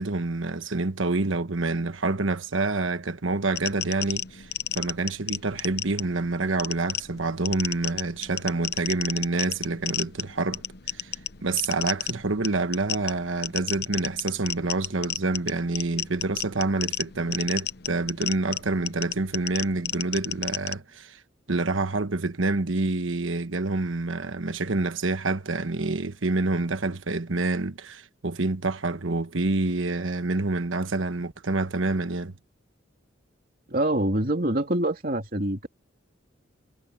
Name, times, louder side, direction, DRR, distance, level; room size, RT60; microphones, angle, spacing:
voice 1, 0.0-11.1 11.4-21.2 21.5-32.3, right 3 dB, 85° right, 1.2 m, -27 dB
sound 1, 3.6-20.7, left 11 dB, 55° left, 1.0 m, -33 dB
voice 2, 33.7-35.7, right 1 dB, 45° right, 3.0 m, -25 dB
head